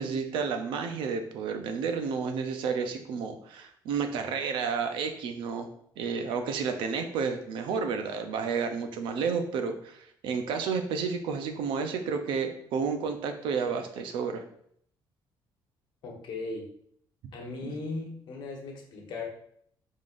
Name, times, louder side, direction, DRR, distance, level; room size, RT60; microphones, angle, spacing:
voice 1, 0.0-5.7 6.0-14.4 17.6-17.7, right 5 dB, 90° right, 7 dB, 0.6 m, -31 dB
voice 2, 16.0-16.7 17.3-19.3, left 3 dB, 65° left, 1 dB, 1.1 m, -37 dB
5.2 x 3.7 x 2.5 m, 0.67 s
cardioid pair, 140°, 8 cm